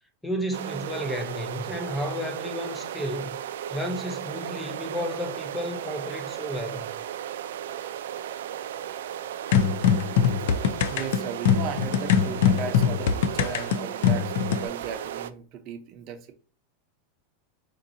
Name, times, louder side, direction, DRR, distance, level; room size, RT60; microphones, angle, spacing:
voice 1, 0.2-3.4 3.7-7.0, equal, 5° left, 0.6 m, -32 dB
sound 1, 0.5-15.3, right 10 dB, 85° right, 0.3 m, -35 dB
sound 2, 9.5-14.7, left 8 dB, 75° left, 0.4 m, -22 dB
voice 2, 10.9-16.3, right 6 dB, 40° right, 0.7 m, -37 dB
3.8 x 2.6 x 2.6 m
supercardioid pair, 150°, 0 cm